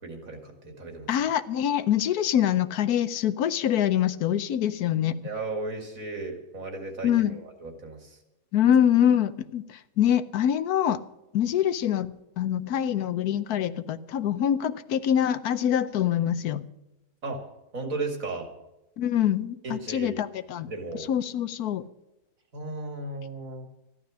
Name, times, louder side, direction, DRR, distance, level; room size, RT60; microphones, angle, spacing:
voice 1, 0.0-1.1 5.2-8.2 17.2-17.4 17.7-18.5 19.6-20.2 20.7-21.0 22.5-23.7, right 3 dB, 60° right, 4 dB, 2.6 m, -35 dB
voice 2, 1.1-5.2 7.0-7.4 8.5-11.0 11.3-16.7 19.0-20.7 21.0-21.8, left 10 dB, 85° left, 14 dB, 1.3 m, -25 dB
14.0 x 11.5 x 6.2 m, 0.95 s
omnidirectional pair, 1.6 m